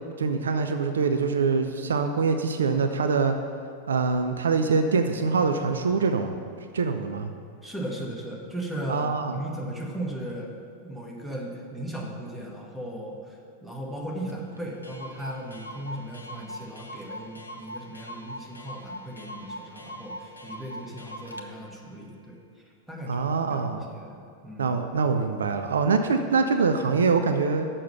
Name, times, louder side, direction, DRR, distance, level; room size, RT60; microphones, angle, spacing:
voice 1, 0.2-3.4 3.9-6.4 6.7-7.3 8.9-9.4 23.1-23.8 24.6-27.7, right 4 dB, 70° right, 7 dB, 0.4 m, -24 dB
voice 2, 7.6-10.5 10.8-22.4 22.9-24.7, right 1 dB, 5° right, -2 dB, 1.4 m, -37 dB
Clock, 14.3-14.4 14.6-14.7 14.8-21.5, equal, 80° left, 0.6 m, -41 dB
6.6 x 5.5 x 6.8 m, 2.5 s
figure-of-eight pair, 90°, 0 cm